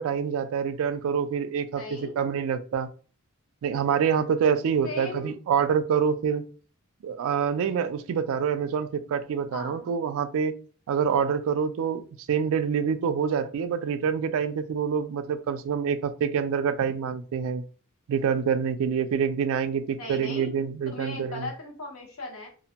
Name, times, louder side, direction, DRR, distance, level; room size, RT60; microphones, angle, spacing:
voice 1, 0.0-2.9 3.6-6.4 7.0-10.5 10.9-17.6 18.1-21.5, right 7 dB, 65° right, 12 dB, 0.3 m, -26 dB
voice 2, 1.7-2.2 4.8-5.3 9.5-9.9 20.0-20.5 20.9-22.5, left 2 dB, 65° left, 1 dB, 0.9 m, -37 dB
2.4 x 2.1 x 2.7 m, 0.39 s
head